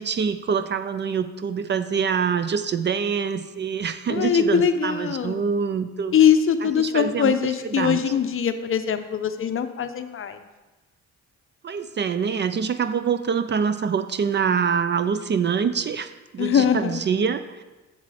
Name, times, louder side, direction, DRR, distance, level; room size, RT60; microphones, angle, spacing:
voice 1, 0.0-6.1 6.8-7.4 7.8-8.0 11.6-17.6, right 6 dB, 40° right, 12 dB, 0.4 m, -25 dB
voice 2, 4.1-5.4 6.1-10.4 16.4-17.0, left 8 dB, 45° left, 9 dB, 0.6 m, -22 dB
7.3 x 5.8 x 4.9 m, 1.1 s
cardioid pair, 90°, 30 cm